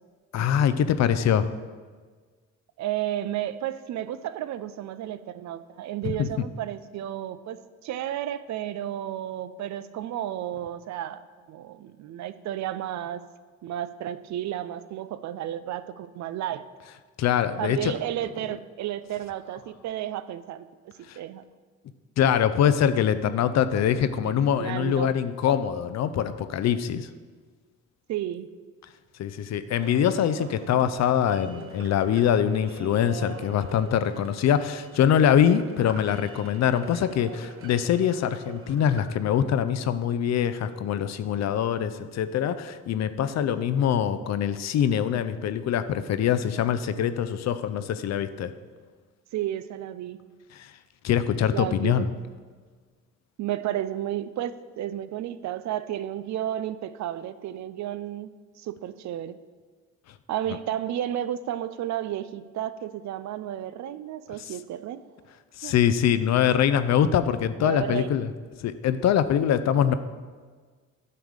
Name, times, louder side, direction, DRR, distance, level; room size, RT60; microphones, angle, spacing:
voice 1, 0.3-1.5 6.0-6.3 17.2-17.9 21.1-21.2 22.2-27.1 29.2-48.5 50.5-50.7 51.0-52.1 64.4-64.5 65.6-68.3 68.6-69.9, left 9 dB, 60° left, 12 dB, 0.5 m, -24 dB
voice 2, 2.8-11.2 11.5-13.2 13.6-16.6 17.6-21.4 24.2-24.3 24.6-25.1 28.1-28.5 49.3-50.2 51.5-52.1 53.4-58.3 58.6-59.4 60.3-65.0 65.6-65.7 67.6-68.1, right 12 dB, 65° right, 14 dB, 0.5 m, -32 dB
sound 1, 29.8-39.1, right 6 dB, 45° right, 1.0 m, -44 dB
9.5 x 3.5 x 6.5 m, 1.5 s
cardioid pair, 90°, 30 cm